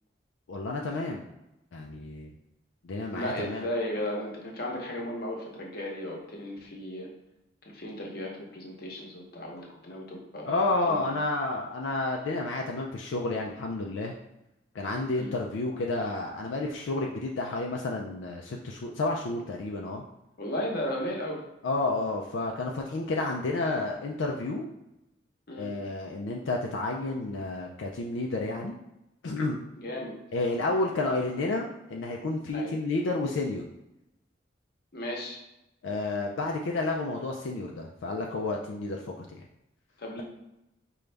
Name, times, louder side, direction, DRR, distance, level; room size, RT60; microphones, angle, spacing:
voice 1, 0.5-1.2 1.7-2.4 2.8-3.7 10.5-14.1 14.7-20.0 21.6-24.7 25.6-28.7 29.2-29.6 30.3-33.6 35.8-39.4, left 2 dB, 80° left, 0 dB, 0.4 m, -30 dB
voice 2, 3.1-7.1 7.6-10.6 10.9-11.1 15.2-15.4 20.4-21.4 25.5-25.7 29.8-30.1 32.5-32.7 34.9-35.4 40.0-40.2, left 1 dB, 55° left, -1 dB, 0.9 m, -35 dB
5.1 x 2.3 x 3.3 m, 0.91 s
head